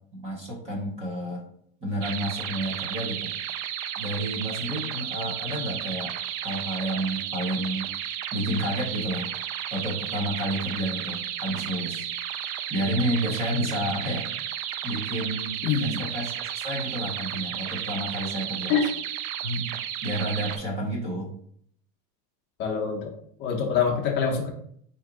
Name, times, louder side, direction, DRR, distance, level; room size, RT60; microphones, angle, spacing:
voice 1, 0.1-1.4 1.8-3.3 4.0-6.1 6.4-7.9 8.3-9.3 9.7-12.1 12.7-14.3 14.8-15.6 16.0-18.8 19.4-21.3, right 1 dB, 15° right, -2 dB, 0.3 m, -30 dB
sound 1, 2.0-20.6, right 10 dB, 85° right, 0.5 m, -33 dB
voice 2, 15.6-16.0 18.7-18.9 22.6-23.1 23.4-24.5, left 6 dB, 25° left, 0 dB, 0.6 m, -25 dB
4.4 x 2.8 x 3.5 m, 0.65 s
cardioid pair, 180°, 42 cm